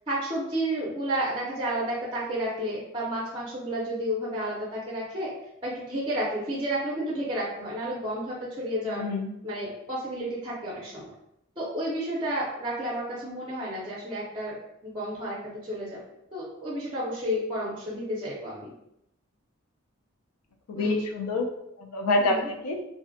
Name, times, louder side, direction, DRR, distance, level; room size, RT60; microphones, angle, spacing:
voice 1, 0.1-5.3 5.6-9.0 9.4-11.1 11.6-16.0 16.3-18.7 20.7-21.0 22.2-22.5, right 1 dB, 20° right, -6 dB, 0.4 m, -31 dB
voice 2, 8.8-9.3 20.7-21.5 21.8-22.8, left 2 dB, 90° left, 2 dB, 0.4 m, -27 dB
2.5 x 2.1 x 2.5 m, 0.81 s
head